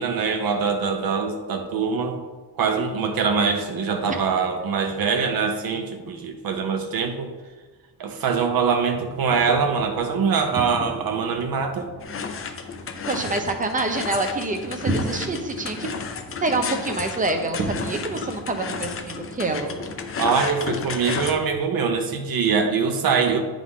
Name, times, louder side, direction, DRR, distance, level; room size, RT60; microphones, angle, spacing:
voice 1, 0.0-2.2 2.6-7.3 8.0-11.9 20.2-23.4, right 5 dB, 65° right, 5 dB, 0.9 m, -23 dB
sound 1, 9.0-21.6, right 2 dB, 40° right, 1.1 m, -36 dB
sound 2, 12.0-21.3, left 5 dB, 35° left, 0.5 m, -33 dB
voice 2, 13.1-15.9 16.4-19.7, right 2 dB, 20° right, 5 dB, 0.6 m, -26 dB
9.5 x 3.7 x 3.7 m, 1.3 s
wide cardioid pair, 150°, 38 cm